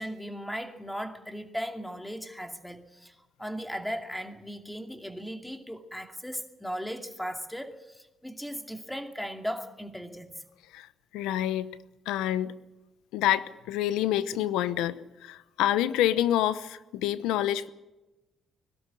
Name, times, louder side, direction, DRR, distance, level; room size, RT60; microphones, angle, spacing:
voice 1, 0.0-10.4, equal, 5° left, 2.5 m, -37 dB
voice 2, 11.1-11.8 12.1-12.6 13.1-17.7, left 12 dB, 85° left, 0.8 m, -27 dB
21.5 x 12.5 x 10.0 m
supercardioid pair, 70°, 0 cm